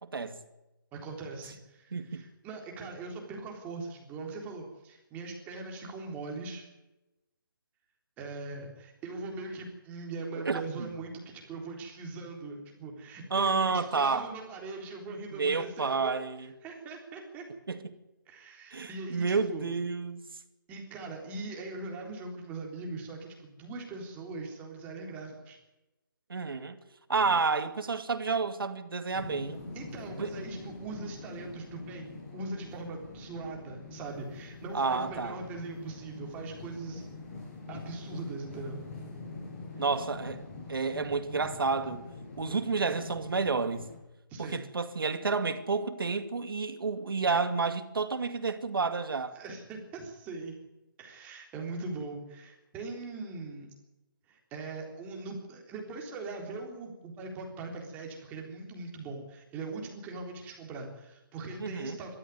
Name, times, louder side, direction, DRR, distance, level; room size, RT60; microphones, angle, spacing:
voice 1, 0.0-0.4 1.9-2.2 10.5-10.9 13.3-14.3 15.3-16.5 17.7-17.8 18.7-20.3 26.3-26.8 27.1-29.6 30.2-30.3 34.7-35.4 39.8-42.1 42.4-43.9 44.4-49.4 61.6-62.0, right 4 dB, 85° right, 2.3 m, -30 dB
voice 2, 0.9-6.7 8.2-16.1 16.6-17.4 18.3-19.7 20.7-25.6 29.7-37.1 37.7-38.8 44.3-44.6 49.3-50.6 51.0-53.7 54.3-62.1, right 3 dB, 15° right, 3.7 m, -41 dB
sound 1, 29.1-44.0, left 3 dB, 40° left, 6.7 m, -44 dB
21.5 x 13.5 x 9.5 m
hypercardioid pair, 165°, 11 cm